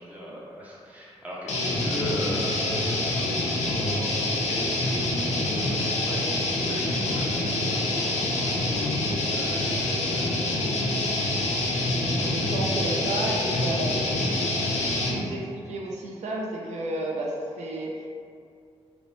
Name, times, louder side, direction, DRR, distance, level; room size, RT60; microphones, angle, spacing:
voice 1, 0.0-10.9 12.4-13.6, equal, 15° right, -5 dB, 0.5 m, -39 dB
sound 1, 1.5-15.2, left 2 dB, 85° left, 0.4 m, -26 dB
voice 2, 11.8-14.3 15.1-18.1, right 1 dB, 80° right, -2 dB, 0.4 m, -32 dB
2.9 x 2.0 x 2.5 m, 2.4 s
wide cardioid pair, 150°, 11 cm